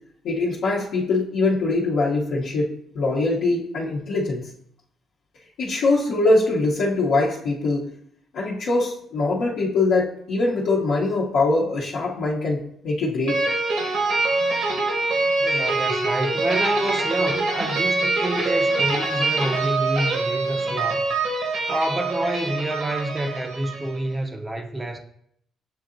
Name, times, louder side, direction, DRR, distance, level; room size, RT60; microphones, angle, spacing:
voice 1, 0.2-4.5 5.6-7.9 8.3-13.4, left 2 dB, 75° left, 0.7 m, -23 dB
sound 1, 13.3-24.0, right 3 dB, 75° right, 1.1 m, -24 dB
voice 2, 15.4-21.1 21.7-25.0, right 1 dB, 20° right, 0.4 m, -28 dB
7.1 x 2.7 x 2.5 m
cardioid pair, 90°, 0 cm